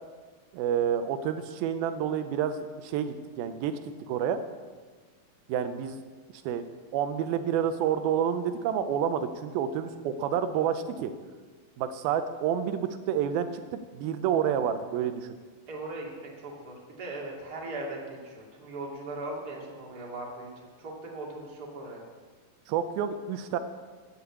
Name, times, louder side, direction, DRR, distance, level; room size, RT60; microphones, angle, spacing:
voice 1, 0.5-3.8 4.1-4.4 5.5-6.0 6.5-6.7 6.9-11.1 11.8-15.4 22.7-23.6, right 8 dB, 85° right, 9 dB, 2.5 m, -29 dB
voice 2, 15.7-22.0, right 2 dB, 30° right, -2 dB, 2.4 m, -39 dB
14.5 x 6.9 x 8.1 m, 1.5 s
omnidirectional pair, 4.2 m